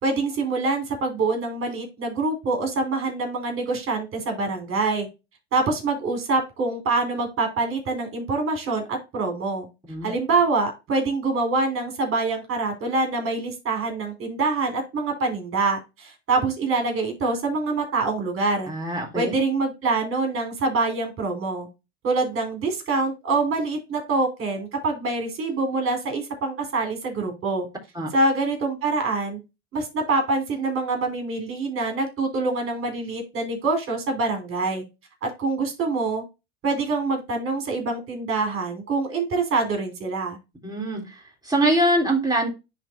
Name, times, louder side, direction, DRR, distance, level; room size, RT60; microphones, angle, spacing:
voice 1, 0.0-5.1 5.5-9.7 10.0-18.7 19.1-21.7 22.0-27.7 28.1-29.4 29.7-34.8 35.2-36.2 36.6-40.4, right 3 dB, 45° right, 4 dB, 4.3 m, -25 dB
voice 2, 18.7-19.3 28.0-28.1 40.6-42.5, right 1 dB, 10° right, -2 dB, 3.5 m, -24 dB
10.5 x 4.2 x 2.6 m, 0.26 s
hypercardioid pair, 90°, 31 cm